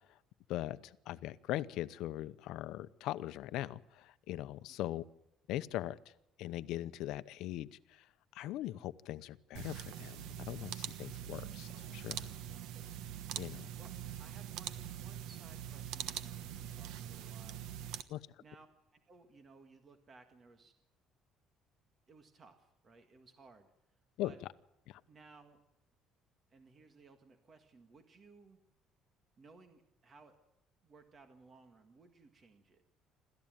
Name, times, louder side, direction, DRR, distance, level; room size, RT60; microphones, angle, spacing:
voice 1, 0.5-5.0 5.5-6.0 6.4-8.0 8.3-12.3 13.4-13.7 18.1-18.2 24.2-24.3 24.9-25.0, left 14 dB, 70° left, 14 dB, 0.8 m, -40 dB
voice 2, 4.7-5.0 12.4-12.8 13.4-17.6 18.4-18.7 18.9-20.7 22.1-23.7 24.2-24.4 25.1-25.6 26.5-28.6 29.4-30.4 30.8-32.8, right 4 dB, 30° right, 6 dB, 1.8 m, -60 dB
sound 1, 9.5-18.0, right 11 dB, 80° right, 1.2 m, -43 dB
27.5 x 14.0 x 9.1 m, 0.87 s
cardioid pair, 165°, 0 cm